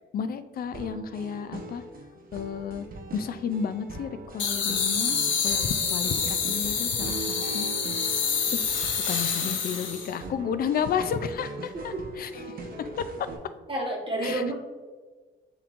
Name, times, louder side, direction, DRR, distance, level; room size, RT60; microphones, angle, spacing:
voice 1, 0.1-1.8 2.3-2.9 3.1-5.1 5.4-7.7 8.5-8.7 9.1-12.6 13.0-13.3 14.2-14.5, left 7 dB, 50° left, 11 dB, 0.4 m, -32 dB
sound 1, 0.7-13.4, right 2 dB, 45° right, 0.8 m, -40 dB
sound 2, 4.4-10.2, left 6 dB, 75° left, 0.8 m, -27 dB
voice 2, 13.7-14.5, right 1 dB, 25° right, -2 dB, 1.4 m, -29 dB
6.9 x 3.1 x 2.5 m, 1.3 s
cardioid pair, 90°, 20 cm